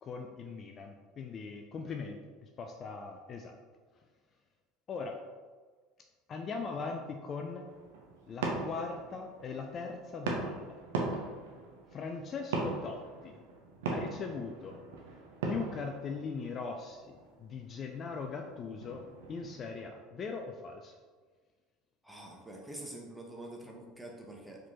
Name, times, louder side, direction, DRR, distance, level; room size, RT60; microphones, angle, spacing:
voice 1, 0.0-3.6 4.9-5.2 6.3-7.7 8.3-10.8 11.9-13.4 13.9-14.8 15.5-21.0, left 4 dB, 35° left, 3 dB, 0.4 m, -40 dB
sound 1, 7.7-19.8, right 3 dB, 70° right, 0.7 m, -40 dB
voice 2, 22.0-24.7, right 1 dB, 5° right, -1 dB, 1.0 m, -46 dB
4.7 x 3.7 x 2.9 m, 1.4 s
figure-of-eight pair, 70°, 0 cm